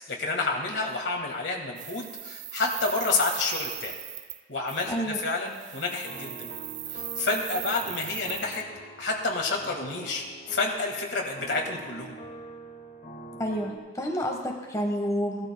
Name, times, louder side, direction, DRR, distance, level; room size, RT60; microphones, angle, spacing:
voice 1, 0.1-4.0 4.5-4.9 5.2-6.5 6.9-8.6 9.0-12.2, left 3 dB, 80° left, 1 dB, 1.7 m, -29 dB
sound 1, 1.8-4.4 4.7-4.9 5.5-8.6, right 12 dB, 45° right, 0.4 m, -38 dB
voice 2, 4.9-5.2 13.4-15.5, equal, 20° left, 1 dB, 1.3 m, -29 dB
sound 2, 6.0-13.8, right 2 dB, 50° left, 1.3 m, -45 dB
17.0 x 12.5 x 2.2 m, 1.3 s
head